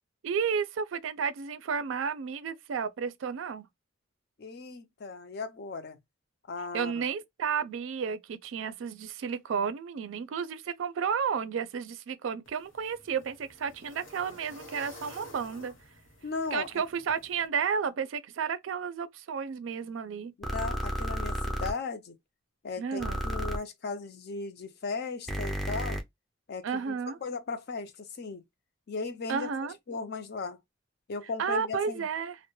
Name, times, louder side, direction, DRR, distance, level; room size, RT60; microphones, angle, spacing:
voice 1, 0.2-3.7 6.7-15.7 16.5-20.3 22.8-23.2 26.6-27.2 29.3-29.8 31.4-32.4, right 6 dB, 75° right, 0.4 m, -32 dB
voice 2, 4.4-6.0 6.5-6.9 16.2-16.8 20.4-22.2 22.6-26.0 26.5-26.9 27.2-28.4 28.9-29.5 29.9-30.6 31.1-32.1, left 4 dB, 55° left, 0.5 m, -37 dB
sound 1, 12.5-17.5, left 2 dB, 70° left, 0.8 m, -51 dB
sound 2, 20.4-21.7 23.0-23.6 25.3-26.0, equal, ahead, 0.4 m, -32 dB
2.2 x 2.0 x 3.0 m
head